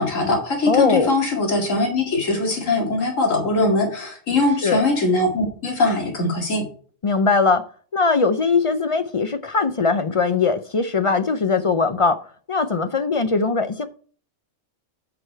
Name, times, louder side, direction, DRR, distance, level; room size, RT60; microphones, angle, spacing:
voice 1, 0.0-6.7, left 2 dB, 85° left, 2.6 m, -21 dB
voice 2, 0.7-1.1 4.6-4.8 7.0-7.6 7.9-12.2 12.5-13.9, left 4 dB, 50° left, 0.4 m, -20 dB
7.8 x 6.1 x 4.5 m
omnidirectional pair, 1.3 m